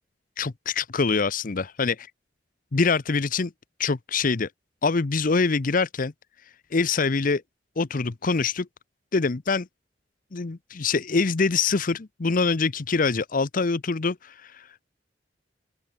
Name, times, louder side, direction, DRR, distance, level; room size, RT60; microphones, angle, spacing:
voice 1, 0.4-1.9 2.7-3.5 3.8-4.5 4.8-6.1 6.7-7.4 7.8-8.7 9.1-9.7 10.3-14.7, left 4 dB, 50° left, 0.7 m, -24 dB
open air
head